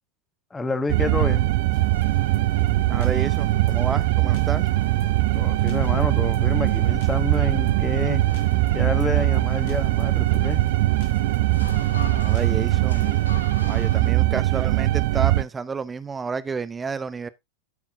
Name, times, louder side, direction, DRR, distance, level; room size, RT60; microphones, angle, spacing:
voice 1, 0.5-1.5 5.3-8.2 8.7-10.7, left 3 dB, 10° left, 1.4 m, -28 dB
sound 1, 0.9-15.4, right 17 dB, 50° right, 0.4 m, -21 dB
sound 2, 1.7-13.2, left 6 dB, 50° left, 1.7 m, -45 dB
sound 3, 1.8-14.1, left 4 dB, 75° left, 1.0 m, -43 dB
voice 2, 2.9-4.7 12.1-13.2 13.7-17.3, right 5 dB, 15° right, 0.7 m, -30 dB
13.0 x 5.8 x 2.7 m
figure-of-eight pair, 90°, 0 cm